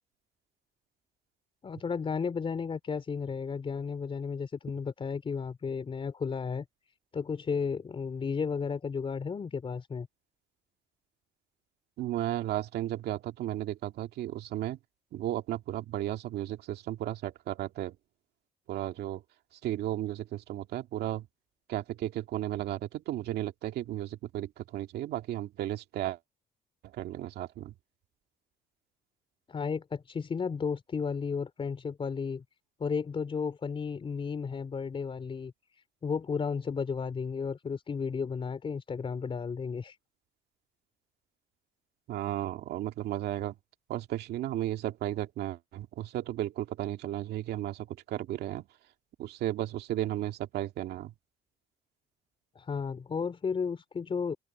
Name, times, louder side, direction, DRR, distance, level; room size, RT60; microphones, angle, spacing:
voice 1, 1.6-6.6 7.1-10.1 29.5-32.4 32.8-35.5 36.0-40.0 52.6-54.4, left 5 dB, 30° left, 3.9 m, -33 dB
voice 2, 12.0-14.8 15.1-17.9 18.7-19.2 19.6-21.2 21.7-26.2 26.9-27.7 42.1-43.5 43.9-48.6 49.2-51.1, right 13 dB, 75° right, 2.1 m, -34 dB
open air
cardioid pair, 110°, 17 cm